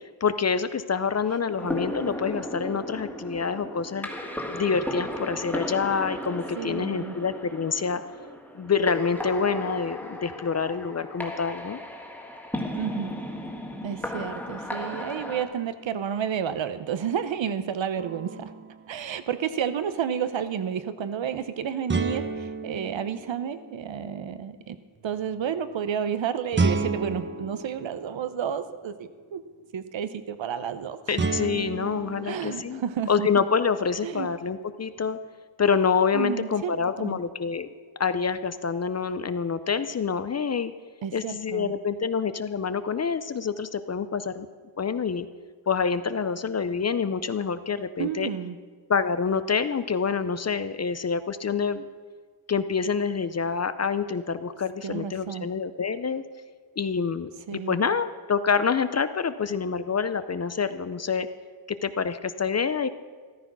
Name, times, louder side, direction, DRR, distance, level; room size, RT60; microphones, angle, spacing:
voice 1, 0.2-4.1 4.5-8.0 8.5-11.8 31.1-32.8 33.1-35.2 35.6-37.7 38.0-40.7 41.1-44.5 44.8-45.3 45.7-48.3 48.9-51.9 52.5-56.2 56.8-61.3 61.7-62.9, left 6 dB, 35° left, 12 dB, 0.5 m, -27 dB
sound 1, 1.6-15.4, left 1 dB, 5° left, 1.8 m, -35 dB
voice 2, 6.6-7.1 12.7-13.2 13.8-18.5 18.9-24.8 25.0-29.4 29.7-31.2 32.2-33.3 34.0-34.3 36.1-37.2 41.0-41.7 48.0-48.6 54.8-55.5 57.5-57.8, right 8 dB, 65° right, 12 dB, 0.9 m, -31 dB
sound 2, 18.0-18.9 21.9-24.1 26.5-28.7 31.2-33.4, right 3 dB, 25° right, 0.7 m, -31 dB
14.0 x 13.5 x 6.1 m, 1.5 s
wide cardioid pair, 160°, 48 cm